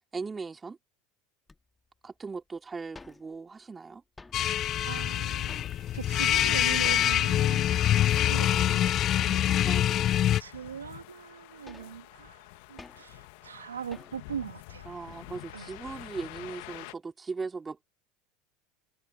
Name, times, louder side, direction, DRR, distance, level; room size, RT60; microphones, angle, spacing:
voice 1, 0.1-0.8 2.0-4.0 8.4-9.1 9.6-10.1 14.9-17.9, right 4 dB, 20° right, 2.7 m, -39 dB
sound 1, 1.5-1.6 2.3-2.4 2.6-2.7 2.8-3.7 4.0-4.7 5.1-6.2 6.8-7.4 7.7-7.8 8.2-8.4 9.0-9.5 10.0-10.1 10.8-10.9 11.3-13.3 13.9-14.4 14.8-15.3, left 3 dB, 15° left, 2.1 m, -51 dB
sound 2, 4.3-10.4, left 11 dB, 40° left, 0.5 m, -25 dB
voice 2, 4.8-9.8 10.4-14.9 15.5-15.8, right 7 dB, 90° right, 1.9 m, -41 dB
sound 3, 6.7-16.9, left 24 dB, 65° left, 2.0 m, -47 dB
hypercardioid pair, 85°, 0 cm